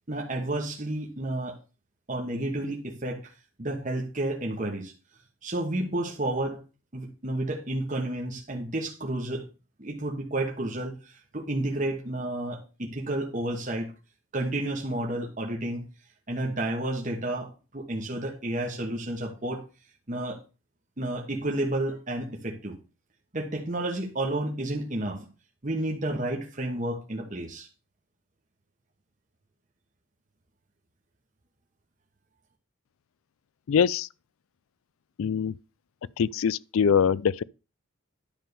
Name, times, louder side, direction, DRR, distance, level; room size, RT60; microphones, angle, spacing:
voice 1, 0.1-1.6 2.1-3.3 3.6-4.9 5.4-6.6 6.9-9.4 9.8-13.9 14.3-15.8 16.3-19.6 20.1-20.4 21.0-22.8 23.3-25.3 25.6-27.7, right 1 dB, 35° right, 1.3 m, -31 dB
voice 2, 33.7-34.1 35.2-35.5 36.2-37.4, left 7 dB, 80° left, 0.4 m, -23 dB
10.0 x 3.7 x 6.8 m
head